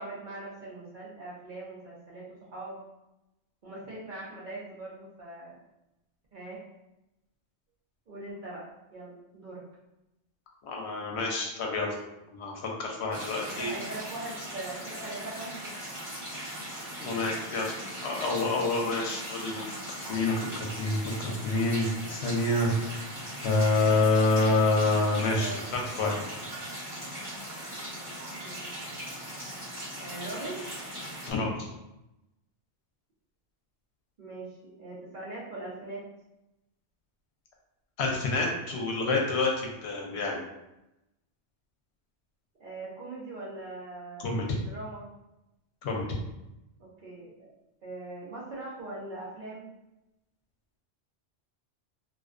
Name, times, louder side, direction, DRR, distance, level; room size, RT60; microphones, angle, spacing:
voice 1, 0.0-2.8 3.6-5.6 6.3-6.6 8.1-8.6 8.9-9.6 13.5-15.7 21.3-21.6 25.3-25.6 28.4-28.6 30.0-30.6 34.2-36.0 42.6-45.1 46.8-47.5 47.8-49.7, right 2 dB, 55° right, -5 dB, 0.7 m, -41 dB
voice 2, 10.6-11.9 12.3-13.7 17.0-17.8 18.0-22.7 23.4-26.2 31.3-31.5 38.0-40.4 44.2-44.5 45.8-46.0, left 2 dB, 75° left, 0 dB, 0.8 m, -27 dB
sound 1, 13.1-31.3, right 1 dB, 20° right, 1.0 m, -39 dB
2.4 x 2.1 x 2.4 m, 0.92 s
omnidirectional pair, 1.2 m